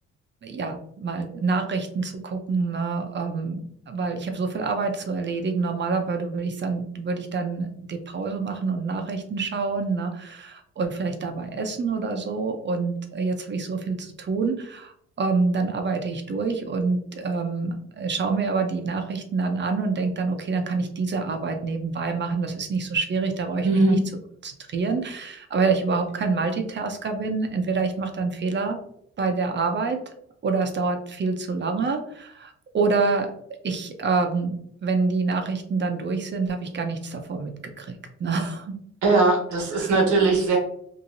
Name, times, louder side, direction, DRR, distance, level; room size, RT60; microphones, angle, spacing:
voice 1, 0.4-24.0 24.4-28.8 29.2-30.0 30.4-33.3 33.6-37.9 38.2-38.8 39.8-39.9, right 4 dB, 35° right, 5 dB, 0.6 m, -27 dB
voice 2, 23.6-24.0 39.0-40.6, right 3 dB, 75° right, 0 dB, 1.1 m, -19 dB
2.9 x 2.6 x 2.6 m, 0.69 s
cardioid pair, 90°, 30 cm